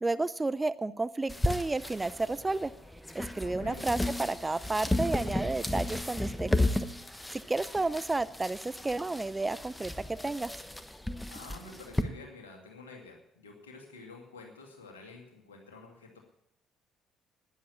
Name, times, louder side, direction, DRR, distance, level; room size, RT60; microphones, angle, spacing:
voice 1, 0.0-2.7 3.1-6.7 7.3-10.5, right 2 dB, 20° right, 15 dB, 0.6 m, -32 dB
sound 1, 1.3-12.0, left 1 dB, 10° left, 1.1 m, -34 dB
voice 2, 3.4-3.8 11.2-16.2, left 3 dB, 80° left, 1 dB, 2.4 m, -49 dB
11.0 x 10.0 x 8.6 m, 0.80 s
figure-of-eight pair, 50°, 0 cm